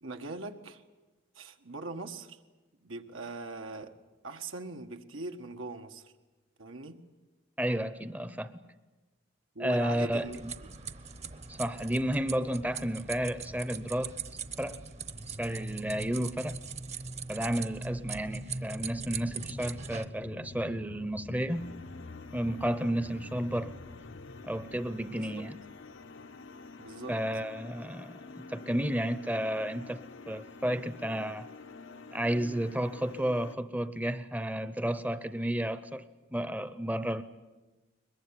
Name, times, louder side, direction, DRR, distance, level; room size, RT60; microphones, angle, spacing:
voice 1, 0.0-0.8 1.4-2.4 2.8-4.0 4.2-6.1 6.6-7.0 9.6-10.8 25.1-25.5 26.8-27.2, right 2 dB, 85° right, 5 dB, 1.7 m, -41 dB
voice 2, 7.6-8.5 9.6-10.5 11.5-14.1 14.6-14.8 15.3-16.6 17.3-21.6 22.3-23.7 24.4-25.6 27.1-30.0 30.3-31.5 32.1-36.0 36.3-37.2, equal, 10° right, 12 dB, 0.7 m, -32 dB
sound 1, 10.2-20.1, right 4 dB, 35° right, 1.0 m, -41 dB
sound 2, 18.2-27.1 27.6-27.7, left 2 dB, 50° left, 0.8 m, -49 dB
sound 3, 21.5-33.5, left 4 dB, 75° left, 0.9 m, -48 dB
22.5 x 21.5 x 9.8 m, 1.2 s
head